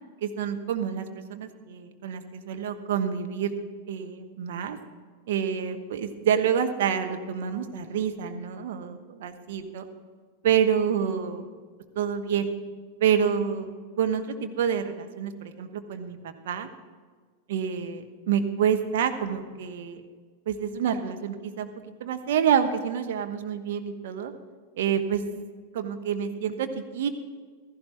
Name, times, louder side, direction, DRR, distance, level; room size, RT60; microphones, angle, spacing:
voice 1, 0.2-3.5 3.9-4.8 5.3-9.8 10.4-11.5 12.0-12.5 13.0-16.7 17.5-20.0 20.5-21.7 22.0-24.3 24.8-25.2 25.7-27.1, right 8 dB, 55° right, 6 dB, 1.0 m, -27 dB
15.5 x 14.0 x 3.3 m, 1.5 s
figure-of-eight pair, 90°, 0 cm